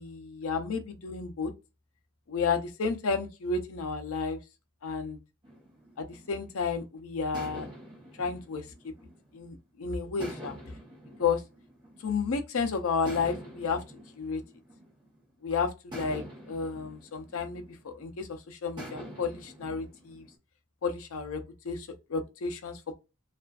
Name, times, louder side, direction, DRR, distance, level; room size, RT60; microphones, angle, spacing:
voice 1, 0.0-1.5 2.3-4.4 4.8-5.2 6.0-7.7 8.2-8.6 9.3-10.5 11.2-11.4 12.0-13.8 14.2-14.4 15.4-20.2 20.8-22.8, left 5 dB, 60° left, 0.5 m, -32 dB
sound 1, 5.4-6.7 7.3-9.6 10.2-12.4 13.0-15.3 15.9-18.2 18.8-20.3, equal, 20° right, 0.8 m, -46 dB
2.4 x 2.3 x 2.3 m
head